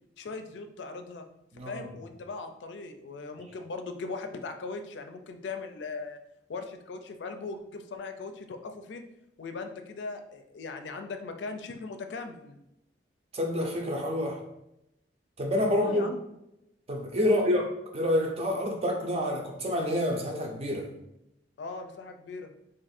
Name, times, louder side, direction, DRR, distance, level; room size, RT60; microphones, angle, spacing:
voice 1, 0.2-1.2 1.7-6.2 6.5-9.0 9.4-12.6 15.8-16.2 17.2-17.5 21.6-22.5, left 3 dB, 85° left, 7 dB, 0.4 m, -39 dB
voice 2, 13.3-14.4 15.4-16.1 16.9-17.6 17.9-20.9, left 1 dB, 35° right, 2 dB, 0.6 m, -28 dB
2.6 x 2.5 x 4.1 m, 0.85 s
head